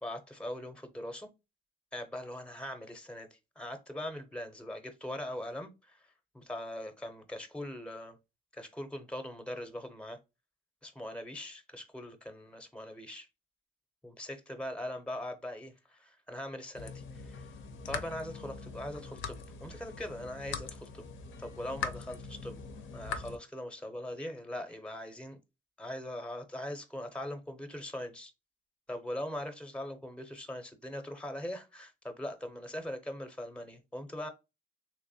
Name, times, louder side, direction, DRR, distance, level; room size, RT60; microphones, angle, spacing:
voice 1, 0.0-1.3 1.9-6.1 6.3-8.2 8.5-10.2 10.8-13.3 14.0-17.5 17.8-21.1 21.4-22.6 22.9-25.4 25.8-28.3 28.9-34.3, left 1 dB, 5° left, 0.6 m, -41 dB
sound 1, 16.7-23.4, left 5 dB, 75° left, 0.6 m, -42 dB
3.3 x 3.0 x 2.6 m
cardioid pair, 90°, 20 cm